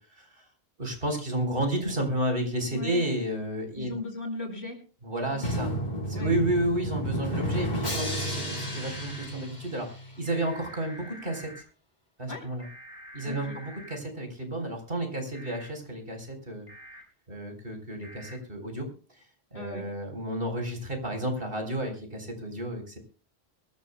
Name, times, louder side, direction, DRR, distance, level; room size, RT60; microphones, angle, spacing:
voice 1, 0.8-4.0 5.0-5.7 6.1-9.9 10.2-11.5 12.2-12.7 13.1-16.7 17.3-18.9 19.5-23.0, right 1 dB, 60° right, 4 dB, 4.4 m, -31 dB
voice 2, 2.7-3.0 3.7-4.8 5.3-5.4 6.1-6.3 12.3-12.5 13.2-13.6 19.5-19.9, left 2 dB, 85° left, 4 dB, 4.7 m, -37 dB
Drum, 5.4-10.3, equal, 45° left, 4.2 m, -32 dB
sound 1, 7.9-9.3 10.2-11.6 12.6-14.0 15.3-15.7 16.7-17.0 18.0-18.4, equal, 35° right, 5.4 m, -47 dB
23.0 x 12.5 x 2.2 m, 0.37 s
omnidirectional pair, 1.1 m